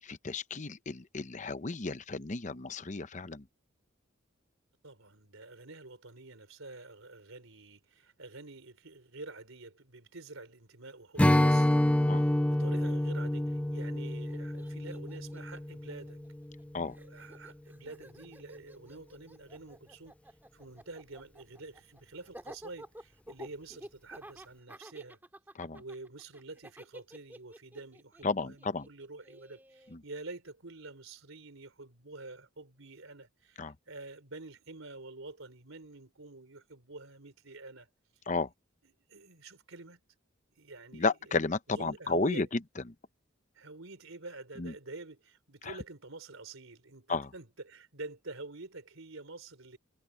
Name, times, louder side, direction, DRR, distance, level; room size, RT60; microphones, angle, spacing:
voice 1, 0.1-3.4 12.1-12.2 16.7-17.0 25.6-25.8 28.2-28.8 33.6-33.7 38.3-38.5 40.9-42.5 44.6-44.7 45.6-45.7 47.1-47.3, left 4 dB, 35° left, 0.8 m, -32 dB
voice 2, 4.8-16.2 17.0-25.2 25.7-37.9 38.8-40.0 40.6-41.4 41.7-42.5 43.5-49.8, right 3 dB, 90° right, 3.8 m, -48 dB
Strum, 11.2-16.6, left 1 dB, 5° left, 0.3 m, -28 dB
Laughter, 14.0-14.1 14.3-16.6 16.9-30.0, right 1 dB, 10° right, 2.3 m, -52 dB
head